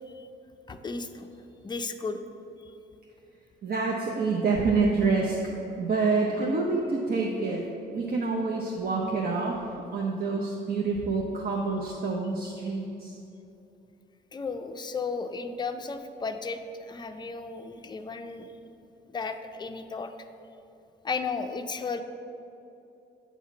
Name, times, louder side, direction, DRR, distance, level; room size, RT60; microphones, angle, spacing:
voice 1, 0.7-1.3 1.6-2.2 14.3-18.5 19.1-20.1 21.0-22.0, left 4 dB, 20° left, 7 dB, 0.4 m, -34 dB
voice 2, 3.6-7.6 7.9-13.2, right 4 dB, 50° right, -1 dB, 0.7 m, -27 dB
8.1 x 2.8 x 5.9 m, 2.8 s
cardioid pair, 90°, 20 cm